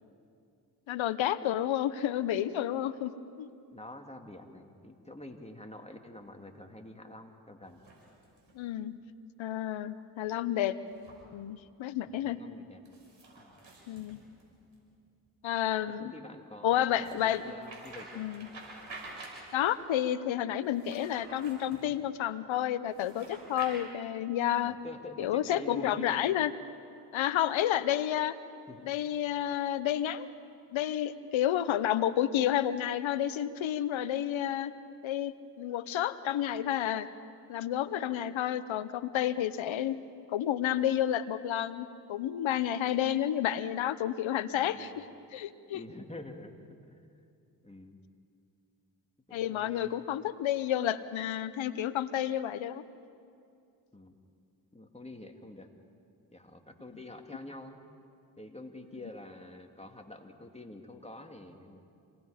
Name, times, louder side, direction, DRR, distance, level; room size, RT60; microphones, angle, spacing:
voice 1, 0.9-3.1 3.4-3.5 8.5-9.0 9.4-10.8 11.3-12.4 13.9-14.2 15.4-16.1 16.6-17.4 18.2-18.5 19.5-24.7 25.2-26.5 27.1-28.4 28.8-30.3 30.7-34.7 35.0-37.1 37.5-40.0 40.3-45.0 45.3-45.8 49.3-52.8, left 11 dB, 75° left, 15 dB, 1.0 m, -30 dB
voice 2, 3.7-7.8 12.1-12.8 13.4-13.6 16.0-18.3 24.6-26.2 28.7-28.9 44.5-45.0 45.7-46.5 46.9-47.1 47.6-48.0 49.3-50.0 53.9-54.1 54.7-55.7 56.3-57.8 58.4-61.8, left 1 dB, 15° left, 3 dB, 2.6 m, -47 dB
sound 1, 7.6-8.6 10.9-11.2 12.8-14.8 16.9-19.8 20.6-21.9 22.9-23.7, right 3 dB, 65° right, 6.3 m, -49 dB
27.5 x 19.5 x 5.2 m, 2.5 s
supercardioid pair, 40°, 47 cm